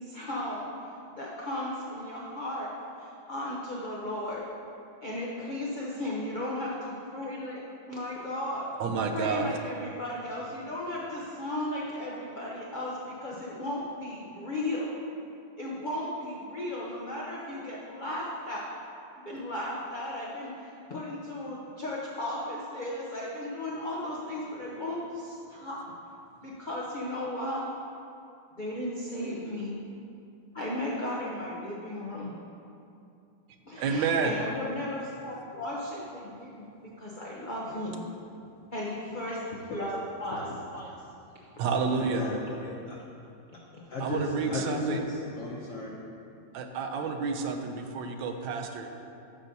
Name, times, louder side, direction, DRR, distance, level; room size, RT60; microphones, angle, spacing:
voice 1, 0.0-0.7 1.1-2.7 3.0-4.4 5.0-7.6 7.9-8.7 9.1-14.9 15.6-18.6 19.2-25.8 26.4-27.7 28.6-29.7 30.5-32.3 33.7-36.6 37.0-38.0 38.7-39.4 39.7-40.4 43.7-43.8, left 1 dB, 85° left, -5 dB, 0.4 m, -35 dB
voice 2, 8.8-9.5 33.8-34.3 41.6-42.2 44.0-45.0 46.5-48.9, right 5 dB, 80° right, 5 dB, 1.3 m, -29 dB
voice 3, 39.3-39.9 40.3-41.1 41.9-43.0 43.9-45.9, left 1 dB, 65° left, -3 dB, 0.8 m, -36 dB
9.0 x 6.4 x 2.7 m, 2.6 s
omnidirectional pair, 2.1 m